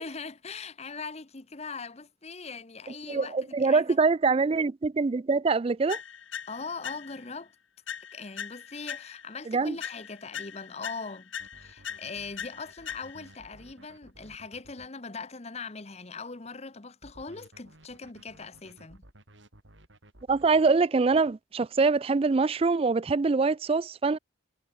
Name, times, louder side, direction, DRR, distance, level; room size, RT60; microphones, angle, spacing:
voice 1, 0.0-4.0 6.5-7.5 8.1-11.3 11.6-19.0, left 4 dB, 35° left, 1.0 m, -41 dB
voice 2, 3.1-6.0 9.5-9.8 20.3-24.2, right 4 dB, 30° right, 0.3 m, -24 dB
sound 1, 5.9-7.4 7.9-9.4 9.8-13.4, left 8 dB, 75° left, 1.6 m, -41 dB
sound 2, 11.4-14.9 17.0-20.8, right 1 dB, 70° right, 5.9 m, -55 dB
head